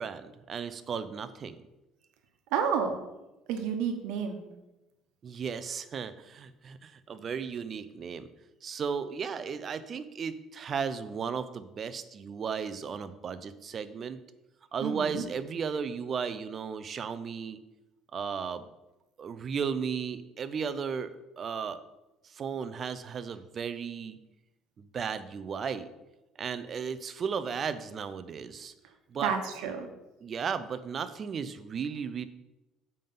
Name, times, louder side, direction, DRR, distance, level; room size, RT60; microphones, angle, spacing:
voice 1, 0.0-1.6 5.2-8.3 8.6-14.2 14.7-17.6 18.1-18.6 19.2-21.1 21.4-21.8 22.2-24.2 24.8-25.9 26.4-28.7 29.1-29.3 30.2-32.3, right 6 dB, 35° right, 13 dB, 0.6 m, -35 dB
voice 2, 2.5-3.0 3.5-4.4 14.8-15.2 29.2-29.9, right 7 dB, 85° right, 5 dB, 1.1 m, -30 dB
7.4 x 5.4 x 5.6 m, 0.99 s
cardioid pair, 140°, 0 cm